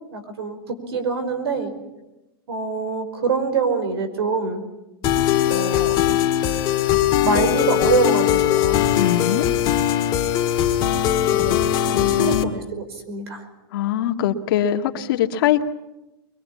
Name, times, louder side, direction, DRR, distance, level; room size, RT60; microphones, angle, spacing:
voice 1, 0.1-1.7 2.5-4.6 5.5-6.2 7.2-8.9 11.2-13.5, right 5 dB, 90° right, 10 dB, 5.2 m, -25 dB
sound 1, 5.0-12.4, left 11 dB, 35° left, 1.9 m, -20 dB
voice 2, 9.0-9.5 11.9-12.6 13.7-15.6, left 11 dB, 60° left, 4 dB, 2.0 m, -22 dB
23.5 x 22.5 x 8.5 m, 0.98 s
supercardioid pair, 150°, 13 cm